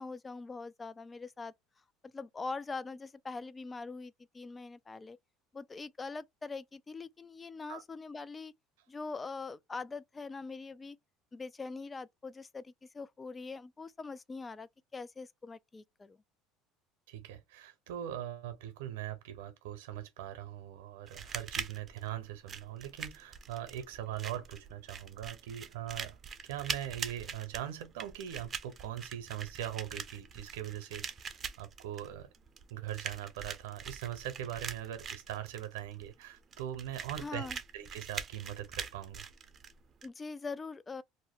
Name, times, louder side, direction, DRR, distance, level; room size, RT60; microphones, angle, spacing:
voice 1, 0.0-1.5 2.0-5.2 5.5-8.5 8.9-11.0 11.3-16.2 37.2-37.6 40.0-41.0, left 4 dB, 25° left, 0.3 m, -43 dB
voice 2, 17.1-26.2 26.4-32.3 32.7-37.5 37.7-39.2, right 11 dB, 85° right, 0.7 m, -41 dB
sound 1, 21.1-40.1, right 6 dB, 35° right, 0.5 m, -43 dB
2.6 x 2.0 x 3.4 m
supercardioid pair, 85°, 0 cm